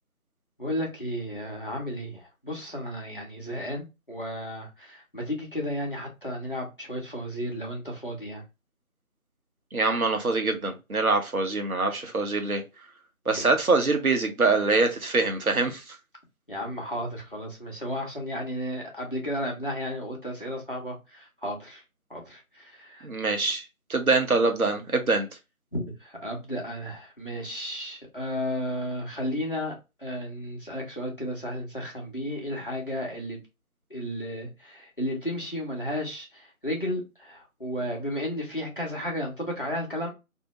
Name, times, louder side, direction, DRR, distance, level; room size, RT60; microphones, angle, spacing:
voice 1, 0.6-8.4 13.3-13.5 16.5-21.8 22.1-23.1 25.7-33.4 33.9-40.1, equal, 40° left, 0.8 m, -33 dB
voice 2, 9.7-12.6 13.3-15.8 23.0-23.6 23.9-25.3, right 3 dB, 80° right, 0.9 m, -24 dB
2.7 x 2.2 x 2.7 m
figure-of-eight pair, 170°, 42 cm